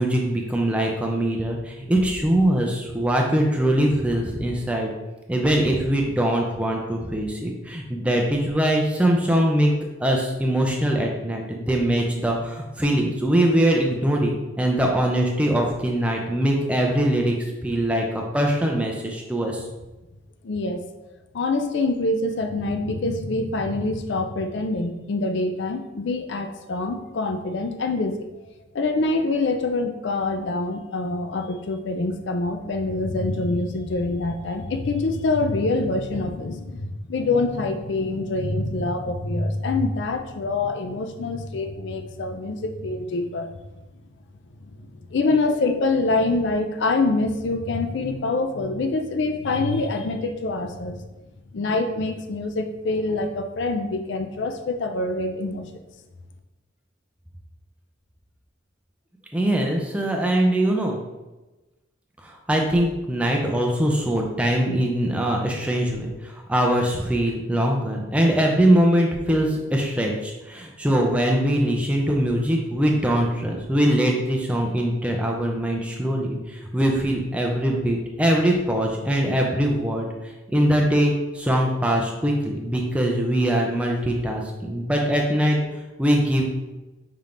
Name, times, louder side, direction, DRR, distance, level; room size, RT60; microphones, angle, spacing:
voice 1, 0.0-4.9 5.3-9.7 10.0-19.7 59.3-61.0 62.2-80.1 80.5-85.6 86.0-86.6, right 1 dB, 5° right, 0 dB, 0.4 m, -22 dB
voice 2, 20.4-20.8 21.3-28.3 28.7-43.5 44.6-44.8 45.1-51.0 51.5-55.8, left 2 dB, 65° left, 6 dB, 0.4 m, -25 dB
5.6 x 3.4 x 2.5 m, 1.1 s
head